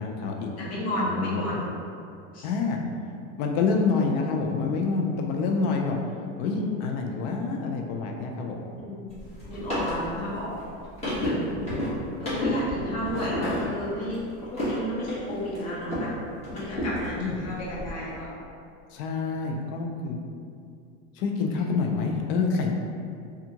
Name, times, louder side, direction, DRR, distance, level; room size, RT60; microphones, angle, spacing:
voice 1, 0.0-0.5 1.0-1.6 2.4-2.8 3.4-6.0 6.4-8.6 11.7-11.9 17.2-17.4 18.9-20.2 21.1-22.7, left 4 dB, 65° left, 2 dB, 0.6 m, -27 dB
voice 2, 0.6-1.7 2.3-2.5 6.5-6.7 8.8-9.0 9.5-10.5 11.1-11.6 12.2-14.2 14.5-16.1 16.5-18.3, equal, 45° left, -6 dB, 1.1 m, -32 dB
sound 1, 9.1-16.1 16.4-17.9, left 1 dB, 15° left, 1.2 m, -32 dB
3.4 x 2.4 x 2.9 m, 2.4 s
supercardioid pair, 115°, 35 cm